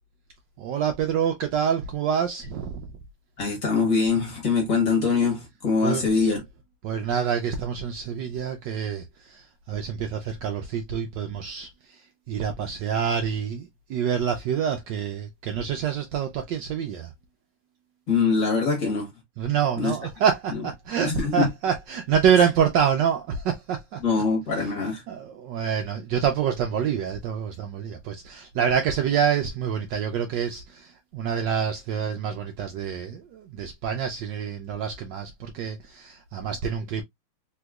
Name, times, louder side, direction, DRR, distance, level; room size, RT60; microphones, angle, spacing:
voice 1, 0.6-2.8 5.8-6.0 6.8-12.0 12.3-17.1 19.4-24.0 25.1-37.0, right 8 dB, 75° right, 1.1 m, -26 dB
voice 2, 3.4-6.4 18.1-19.1 19.8-20.0 20.5-20.6 21.0-21.5 22.4-22.5 24.0-25.0, left 4 dB, 45° left, 1.5 m, -23 dB
3.5 x 2.9 x 2.2 m
omnidirectional pair, 2.3 m